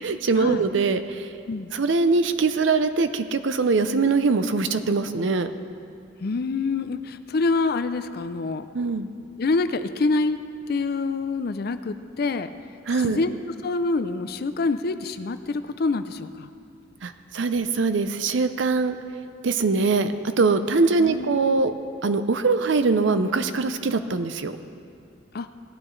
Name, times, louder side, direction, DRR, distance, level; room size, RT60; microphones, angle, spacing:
voice 1, 0.0-1.3 1.7-5.5 8.7-9.1 12.9-13.2 17.0-19.0 19.4-21.7 22.0-24.5, right 4 dB, 70° right, 10 dB, 0.6 m, -22 dB
voice 2, 6.2-8.7 9.4-10.4 10.7-12.5 13.0-13.4 13.6-16.5 21.0-21.6 25.3-25.5, left 3 dB, 55° left, 11 dB, 0.5 m, -26 dB
17.5 x 11.5 x 3.2 m, 2.4 s
head